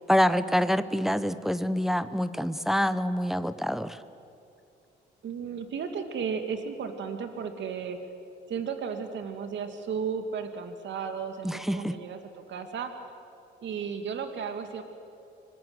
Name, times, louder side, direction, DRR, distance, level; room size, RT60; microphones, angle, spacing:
voice 1, 0.1-4.0 11.4-11.9, equal, ahead, 12 dB, 0.9 m, -26 dB
voice 2, 5.2-8.0 8.5-12.9 13.6-14.8, right 6 dB, 65° right, 6 dB, 2.2 m, -34 dB
25.0 x 21.0 x 7.9 m, 2.8 s
cardioid pair, 90°, 20 cm